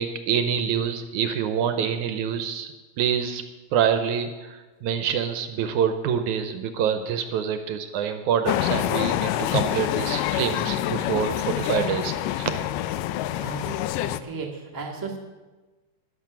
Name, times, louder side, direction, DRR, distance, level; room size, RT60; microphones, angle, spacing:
voice 1, 0.0-2.7 3.0-3.4 3.7-12.5, right 8 dB, 75° right, 8 dB, 1.9 m, -26 dB
Train Interior Atmosphere, 8.5-14.2, left 13 dB, 85° left, 2.1 m, -26 dB
voice 2, 13.4-15.2, right 4 dB, 15° right, -1 dB, 0.7 m, -35 dB
13.0 x 10.5 x 6.0 m, 1.2 s
omnidirectional pair, 3.8 m